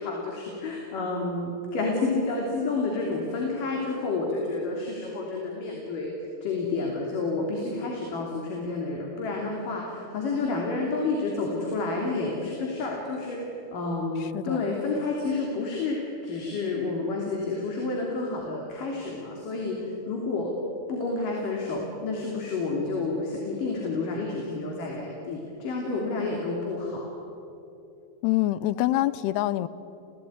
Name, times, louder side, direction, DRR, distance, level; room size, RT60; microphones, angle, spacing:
voice 1, 0.0-6.1 6.4-20.5 20.9-27.1, left 3 dB, 55° left, -1 dB, 4.4 m, -30 dB
voice 2, 14.2-14.6 28.2-29.7, left 15 dB, 85° left, 15 dB, 2.8 m, -25 dB
28.5 x 17.0 x 9.6 m, 2.9 s
omnidirectional pair, 4.6 m